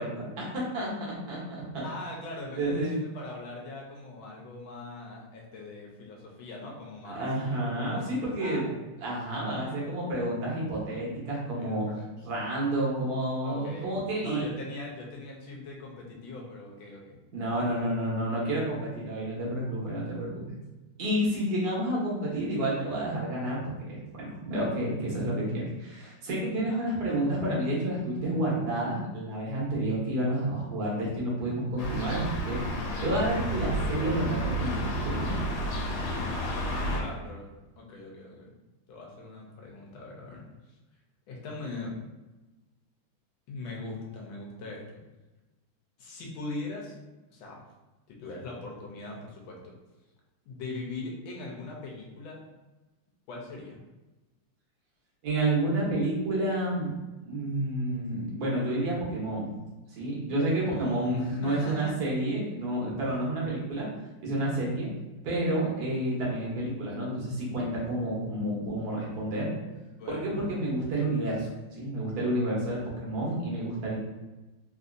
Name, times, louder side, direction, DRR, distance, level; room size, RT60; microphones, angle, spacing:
voice 1, 0.0-1.9 2.6-2.9 7.0-8.6 9.0-11.9 12.2-14.5 17.3-20.4 21.0-35.5 55.2-56.9 57.2-59.6 59.9-63.9 64.2-64.9 65.2-69.5 70.1-71.5 71.8-74.0, right 1 dB, 55° right, -4 dB, 1.3 m, -30 dB
voice 2, 1.8-8.7 11.6-12.1 13.4-17.2 17.5-17.9 18.4-18.6 26.4-27.4 36.9-37.5 37.8-38.5 38.9-40.8 41.3-41.9 43.5-45.0 46.0-47.0 47.3-47.6 48.1-49.7 50.5-52.4 53.3-53.8 60.7-62.0 63.0-63.3 69.9-70.6, left 2 dB, 75° left, -1 dB, 1.5 m, -41 dB
sound 1, 31.8-37.0, equal, 90° left, 1.6 m, -31 dB
3.8 x 2.6 x 2.5 m, 1.1 s
omnidirectional pair, 2.3 m